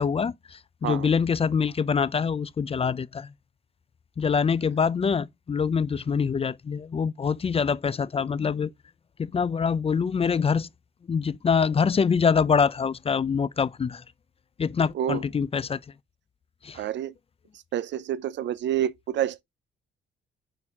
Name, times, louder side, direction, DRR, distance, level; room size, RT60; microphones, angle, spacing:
voice 1, 0.0-3.3 4.2-8.7 9.2-10.7 11.1-14.0 14.6-15.8 16.6-16.8, left 6 dB, 30° left, 0.5 m, -25 dB
voice 2, 16.7-17.1 17.7-19.4, right 11 dB, 65° right, 0.6 m, -28 dB
9.0 x 4.3 x 3.5 m
cardioid pair, 90°, 20 cm